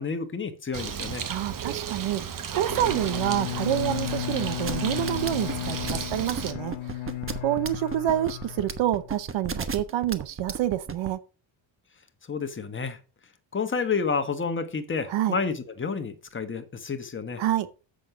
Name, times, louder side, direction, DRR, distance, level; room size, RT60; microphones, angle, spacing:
voice 1, 0.0-1.3 12.3-13.0 13.5-17.4, left 5 dB, 25° left, 1.3 m, -30 dB
Bird, 0.7-6.5, right 8 dB, 45° right, 1.1 m, -34 dB
voice 2, 1.3-7.0 7.4-11.2 15.1-15.4 17.4-17.7, right 12 dB, 75° right, 0.8 m, -28 dB
Bowed string instrument, 2.7-9.3, left 14 dB, 85° left, 0.6 m, -35 dB
sound 1, 4.6-11.1, right 5 dB, 30° right, 1.0 m, -33 dB
7.6 x 6.4 x 4.9 m
cardioid pair, 115°, 46 cm